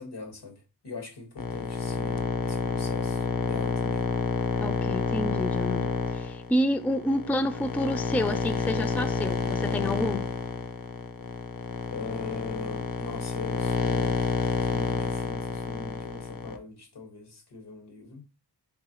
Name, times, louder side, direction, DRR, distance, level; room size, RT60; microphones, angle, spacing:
voice 1, 0.0-4.0 11.9-14.3 14.6-18.2, left 3 dB, 80° left, 1.6 m, -41 dB
sound 1, 1.4-16.6, left 5 dB, 55° left, 0.7 m, -29 dB
voice 2, 4.6-10.3, equal, 5° left, 0.4 m, -29 dB
4.7 x 3.7 x 2.9 m
cardioid pair, 55°, 40 cm